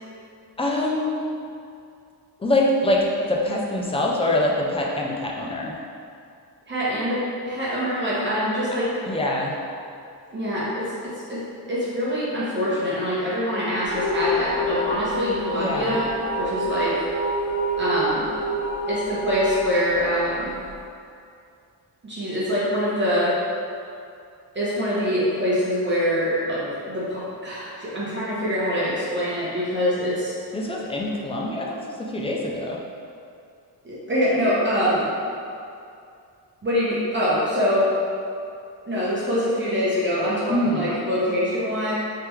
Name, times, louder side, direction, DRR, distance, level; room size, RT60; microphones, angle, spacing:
voice 1, 0.6-1.1 2.4-5.7 9.1-9.5 15.5-16.0 30.5-32.8 40.5-40.9, left 1 dB, 15° left, -2 dB, 0.3 m, -24 dB
voice 2, 6.7-7.2 7.5-9.1 10.3-10.8 11.3-16.1 16.4-16.9 17.8-18.3 18.9-20.5 22.0-23.3 24.5-30.3 33.8-35.1 36.6-37.9 38.9-41.9, equal, 25° right, -9 dB, 1.0 m, -24 dB
sound 1, 13.8-20.8, equal, 90° left, 1.4 m, -27 dB
3.4 x 3.3 x 3.1 m, 2.4 s
cardioid pair, 120°, 42 cm